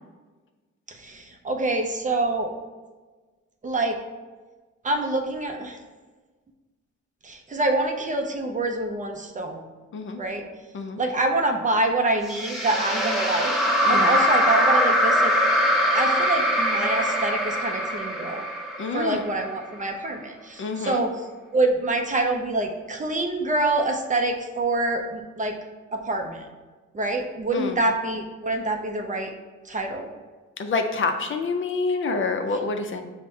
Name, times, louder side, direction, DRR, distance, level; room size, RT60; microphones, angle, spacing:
voice 1, 0.9-2.5 3.6-4.0 4.8-5.8 7.2-9.7 10.1-10.5 11.0-13.5 13.9-15.3 15.9-18.5 18.9-25.6 25.9-26.5 26.9-29.3 29.6-30.1, right 2 dB, 25° right, 3 dB, 0.5 m, -26 dB
sound 1, 12.3-19.6, equal, ahead, 0.8 m, -22 dB
voice 2, 13.8-14.2 18.8-19.2 20.6-21.0 27.5-27.8 30.6-33.1, left 4 dB, 40° left, 6 dB, 0.4 m, -27 dB
5.4 x 2.1 x 4.2 m, 1.3 s
cardioid pair, 90°, 30 cm